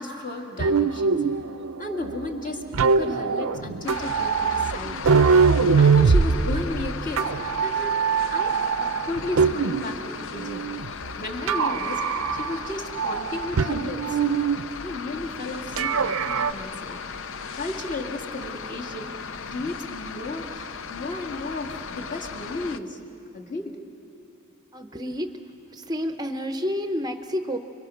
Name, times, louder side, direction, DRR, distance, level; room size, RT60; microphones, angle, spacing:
voice 1, 0.0-1.5 1.8-5.0 5.8-8.0 8.3-8.5 8.8-10.6 10.9-14.2 14.8-17.0 17.5-19.1 19.5-23.0 23.3-23.7, left 2 dB, 40° left, 2 dB, 2.3 m, -34 dB
sound 1, 0.6-10.0 10.3-11.1 11.5-12.7 13.0-14.6 15.8-16.5, right 5 dB, 75° right, 0.6 m, -23 dB
sound 2, 3.8-22.8, left 5 dB, 65° left, 0.7 m, -37 dB
voice 2, 24.7-25.3 25.7-27.6, equal, 20° right, 7 dB, 0.7 m, -29 dB
30.0 x 23.0 x 6.5 m, 2.9 s
head